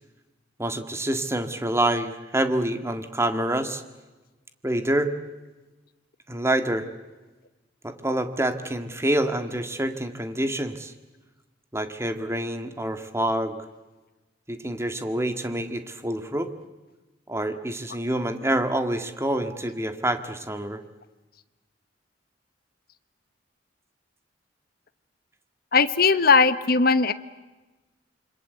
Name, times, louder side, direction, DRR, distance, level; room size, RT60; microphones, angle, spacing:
voice 1, 0.6-3.8 4.6-5.1 6.3-6.9 7.8-10.9 11.7-13.7 14.5-16.5 17.3-20.8, right 1 dB, 15° right, 8 dB, 1.8 m, -27 dB
voice 2, 25.7-27.1, left 4 dB, 55° left, 12 dB, 1.2 m, -19 dB
27.5 x 25.0 x 8.1 m, 1.2 s
head